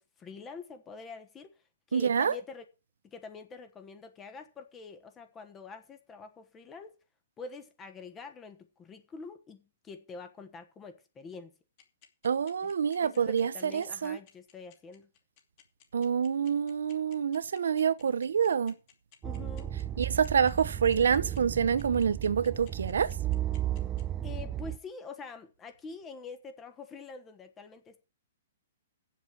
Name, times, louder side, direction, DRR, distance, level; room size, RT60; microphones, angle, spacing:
voice 1, 0.0-1.5 1.9-2.6 3.0-6.9 7.4-11.5 13.0-15.1 19.2-19.7 24.2-28.0, left 4 dB, 15° left, 1.2 m, -46 dB
voice 2, 1.9-2.4 12.2-14.2 15.9-18.7 20.0-23.1, right 7 dB, 85° right, 0.9 m, -27 dB
sound 1, 11.8-24.0, left 10 dB, 35° left, 2.7 m, -58 dB
sound 2, 19.2-24.8, right 12 dB, 20° right, 0.6 m, -34 dB
7.8 x 7.4 x 8.5 m
hypercardioid pair, 160°, 0 cm